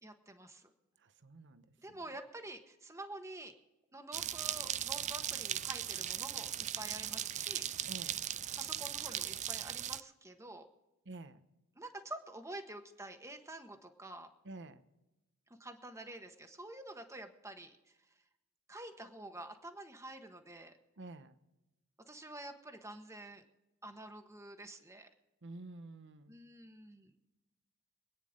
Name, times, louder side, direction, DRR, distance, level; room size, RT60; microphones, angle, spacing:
voice 1, 0.0-0.7 1.8-3.5 3.9-7.7 8.5-10.7 11.8-14.3 15.5-18.0 18.7-20.7 22.1-23.4 23.8-25.1 26.3-27.1, right 1 dB, 15° right, 6 dB, 1.4 m, -48 dB
voice 2, 1.0-2.0 7.9-8.3 11.1-11.4 14.4-14.8 21.0-21.4 25.4-26.4, right 2 dB, 55° right, 11 dB, 1.0 m, -50 dB
sound 1, 4.1-10.0, right 11 dB, 30° right, 0.4 m, -38 dB
25.5 x 9.7 x 3.7 m, 1.0 s
head